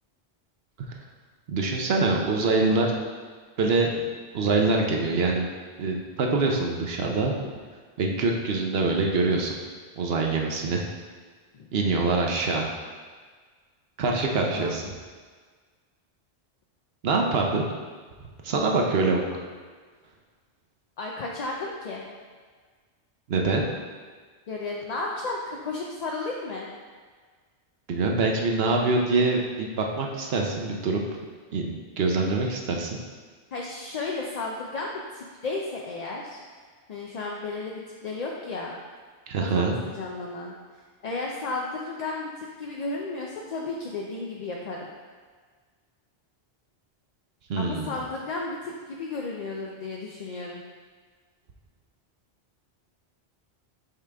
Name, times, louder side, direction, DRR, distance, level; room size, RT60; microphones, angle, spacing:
voice 1, 1.5-2.9 3.6-3.9 4.3-5.5 5.8-7.3 8.0-9.5 10.0-10.8 11.7-12.7 14.0-14.8 17.0-17.6 18.4-19.2 23.3-23.6 27.9-31.0 31.5-32.9 39.3-39.8 47.5-47.9, right 3 dB, 65° right, 1 dB, 0.9 m, -24 dB
voice 2, 14.5-14.9 21.0-22.1 24.5-26.7 33.5-36.4 36.9-38.8 39.4-44.9 47.6-50.6, left 3 dB, 50° left, -1 dB, 0.5 m, -34 dB
5.7 x 4.9 x 3.4 m, 1.6 s
omnidirectional pair, 1.1 m